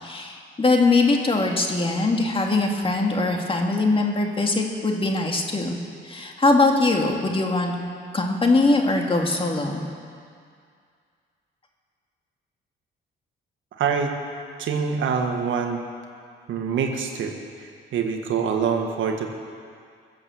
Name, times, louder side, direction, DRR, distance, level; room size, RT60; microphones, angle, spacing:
voice 1, 0.0-7.7 8.1-9.8, left 3 dB, 25° left, 2 dB, 2.2 m, -22 dB
voice 2, 13.8-14.1 14.6-15.8 16.5-17.3 17.9-19.3, right 6 dB, 75° right, 4 dB, 1.7 m, -25 dB
21.5 x 7.9 x 7.1 m, 2.2 s
cardioid pair, 90°, 20 cm